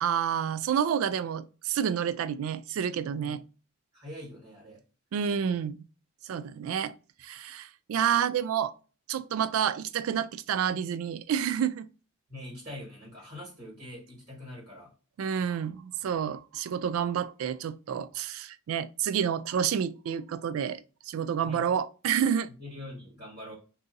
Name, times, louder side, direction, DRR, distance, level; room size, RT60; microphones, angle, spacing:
voice 1, 0.0-3.4 5.1-5.8 6.2-6.9 7.2-8.7 9.1-11.9 15.2-22.5, right 8 dB, 90° right, 0.3 m, -29 dB
voice 2, 3.9-4.8 12.3-14.9 21.4-21.6 22.5-23.5, left 1 dB, 45° right, 1.6 m, -44 dB
3.8 x 2.7 x 2.6 m
head